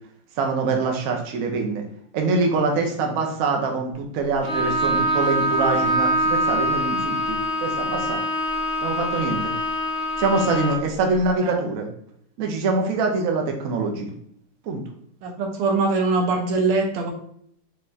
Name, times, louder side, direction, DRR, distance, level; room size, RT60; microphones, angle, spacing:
voice 1, 0.4-1.8 2.1-8.2 8.8-9.5 10.2-11.9 12.4-14.1 14.6-14.8, right 3 dB, 60° right, 2 dB, 0.9 m, -24 dB
Bowed string instrument, 4.4-10.9, equal, 35° right, 1.7 m, -24 dB
voice 2, 15.2-17.1, right 3 dB, 90° right, 2 dB, 1.8 m, -22 dB
5.5 x 3.3 x 2.7 m, 0.67 s
omnidirectional pair, 2.4 m